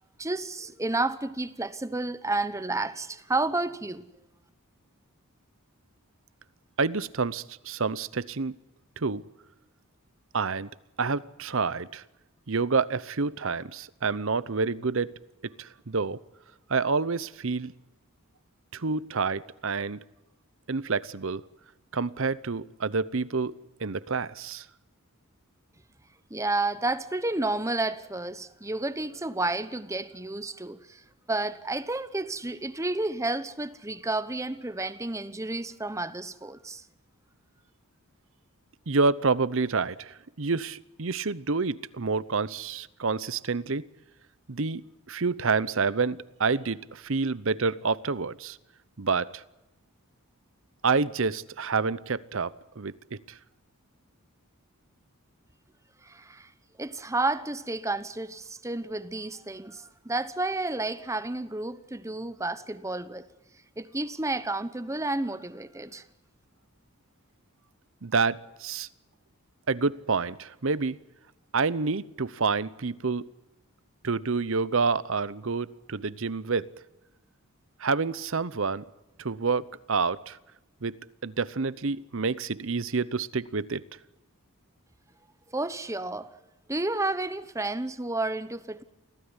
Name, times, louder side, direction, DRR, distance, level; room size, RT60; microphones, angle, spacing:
voice 1, 0.2-4.0 26.3-31.0 31.3-36.8 56.0-56.5 56.8-63.3 63.8-66.0 85.5-86.3 86.7-88.8, right 2 dB, 15° right, 1.0 m, -31 dB
voice 2, 6.8-8.6 9.0-9.2 10.3-10.7 11.0-12.0 12.5-15.1 15.4-16.2 16.7-17.7 18.7-20.0 20.7-21.4 21.9-23.5 23.8-24.7 38.9-43.8 44.5-44.8 45.1-48.6 49.0-49.4 50.8-53.4 68.0-68.9 69.7-71.0 71.5-73.2 74.0-76.7 77.8-78.8 79.2-80.4 80.8-80.9 81.2-83.8, right 4 dB, 60° right, 0.8 m, -28 dB
25.0 x 16.5 x 9.8 m
head